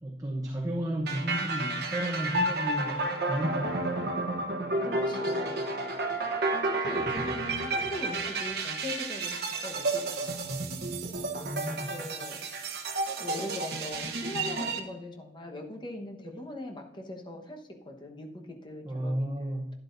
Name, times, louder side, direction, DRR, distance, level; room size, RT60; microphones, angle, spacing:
voice 1, 0.0-3.0 3.2-4.1 11.4-11.9 18.8-19.8, right 1 dB, 20° right, -1 dB, 1.0 m, -33 dB
sound 1, 1.1-14.8, right 2 dB, 55° right, 1.0 m, -31 dB
voice 2, 4.8-5.6 6.6-10.6 11.9-12.4 13.2-19.8, left 1 dB, 25° left, 2 dB, 1.2 m, -41 dB
12.0 x 10.5 x 2.7 m, 0.86 s
head